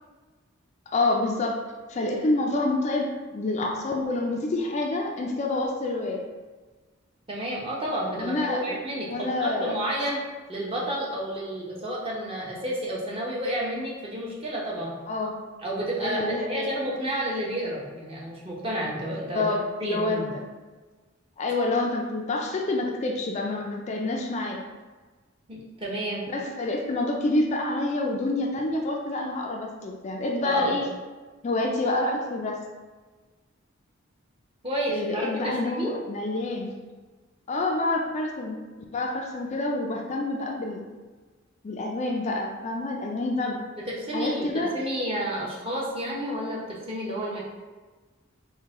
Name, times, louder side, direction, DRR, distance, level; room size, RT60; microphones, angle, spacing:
voice 1, 0.9-6.2 8.2-8.8 9.1-9.8 15.1-15.4 16.0-16.8 19.4-20.4 21.4-24.6 26.3-30.9 31.4-32.6 34.9-36.7 37.5-38.6 38.9-40.9 41.6-43.6 44.1-44.7, left 2 dB, 35° left, 1 dB, 0.3 m, -27 dB
voice 2, 7.3-10.2 10.5-15.0 15.6-19.5 19.8-20.3 25.5-26.2 30.4-30.8 34.6-35.9 43.9-47.4, right 1 dB, 30° right, -4 dB, 0.8 m, -31 dB
4.7 x 2.2 x 3.6 m, 1.3 s
head